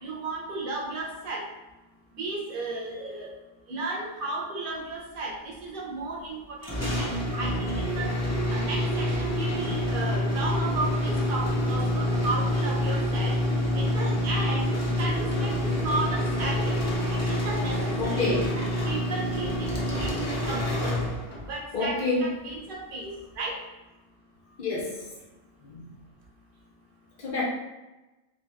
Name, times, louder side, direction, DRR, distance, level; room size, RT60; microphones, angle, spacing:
voice 1, 0.0-1.4 2.1-3.3 3.7-8.1 8.5-13.4 13.7-14.7 15.0-16.8 17.1-18.2 18.8-20.2 20.5-21.0 21.4-23.6, right 2 dB, 60° right, -3 dB, 1.0 m, -34 dB
sound 1, 6.6-21.6, left 1 dB, 20° left, 0.5 m, -27 dB
voice 2, 18.0-18.6 21.7-22.3 24.6-25.1 25.6-25.8 27.2-27.4, left 2 dB, 55° left, -4 dB, 0.8 m, -28 dB
3.0 x 2.8 x 3.4 m, 1.1 s
omnidirectional pair, 1.0 m